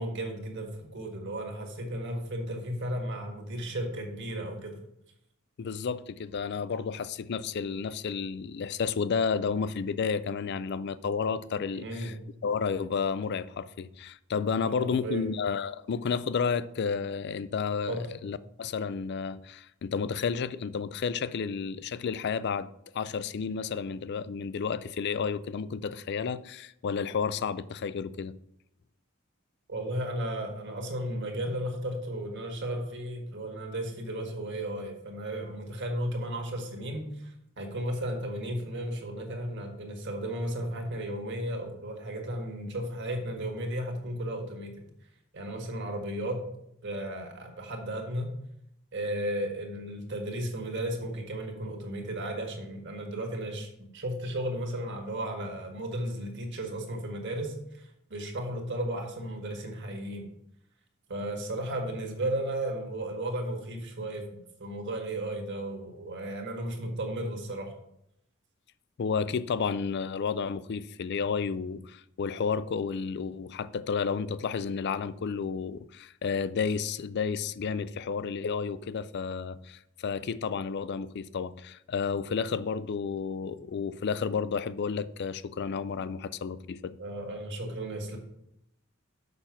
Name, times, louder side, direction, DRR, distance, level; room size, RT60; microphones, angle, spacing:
voice 1, 0.0-4.8 11.7-12.1 14.6-15.3 17.9-18.1 29.7-44.9 45.3-46.4 46.8-48.3 48.9-60.3 61.1-67.7 87.0-88.2, right 1 dB, 55° right, 1.7 m, -34 dB
voice 2, 5.6-12.1 12.4-28.4 69.0-87.0, left 5 dB, 50° left, 0.4 m, -31 dB
6.8 x 5.7 x 5.8 m
head